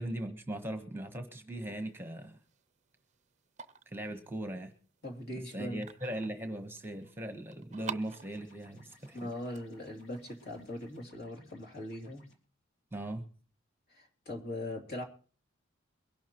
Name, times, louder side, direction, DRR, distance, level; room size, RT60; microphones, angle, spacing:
voice 1, 0.0-2.4 3.9-4.7 5.3-9.3 12.9-13.2, right 1 dB, 10° right, 7 dB, 1.1 m, -39 dB
sound 1, 1.6-11.0, right 6 dB, 35° right, 0.6 m, -50 dB
voice 2, 5.0-5.8 9.1-12.3 13.9-15.0, left 1 dB, 50° left, 1 dB, 2.9 m, -40 dB
sound 2, 8.0-12.3, left 1 dB, 65° left, 3.2 m, -63 dB
23.0 x 11.5 x 3.0 m, 0.40 s
head